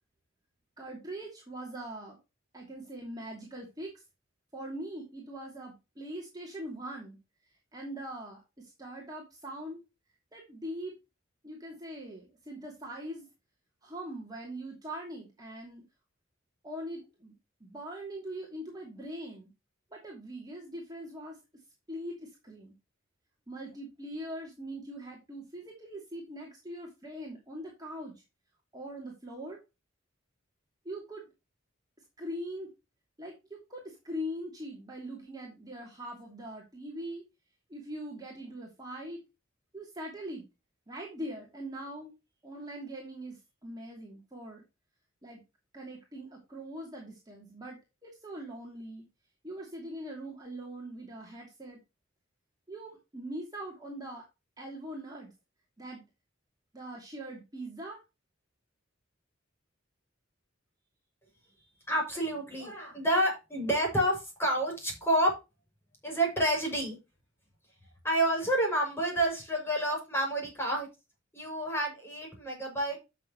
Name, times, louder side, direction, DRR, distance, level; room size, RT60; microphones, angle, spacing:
voice 1, 0.8-2.2 2.5-3.9 4.5-7.2 7.7-9.8 10.3-11.0 11.4-13.3 13.8-15.8 16.6-17.3 17.6-19.5 19.9-21.4 21.9-22.7 23.5-28.1 28.7-29.6 30.8-31.3 32.2-32.7 33.2-37.2 37.7-39.2 39.7-40.4 40.9-42.1 42.4-44.6 45.2-45.4 45.7-49.0 49.4-51.8 52.7-54.3 54.6-55.3 55.8-56.0 56.7-58.0, right 1 dB, 20° right, -2 dB, 2.8 m, -42 dB
voice 2, 61.9-65.3 66.0-67.0 68.0-70.9 71.3-73.0, right 1 dB, 10° left, 0 dB, 6.3 m, -29 dB
12.0 x 6.8 x 3.0 m, 0.26 s
head